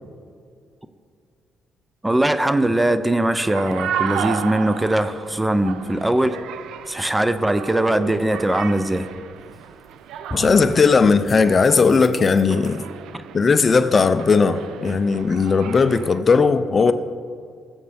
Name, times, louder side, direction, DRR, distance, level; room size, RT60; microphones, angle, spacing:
voice 1, 2.0-6.4 6.9-9.1 13.1-13.2, right 1 dB, 10° right, 11 dB, 0.5 m, -21 dB
sound 1, 3.4-16.2, right 8 dB, 85° right, 0.5 m, -34 dB
sound 2, 9.5-9.9 10.3-10.7 11.2-12.7, left 1 dB, 20° left, 1.0 m, -36 dB
voice 2, 10.4-12.8 13.3-16.9, left 4 dB, 40° left, 11 dB, 0.5 m, -17 dB
17.5 x 8.0 x 3.5 m, 2.2 s
cardioid pair, 90°, 0 cm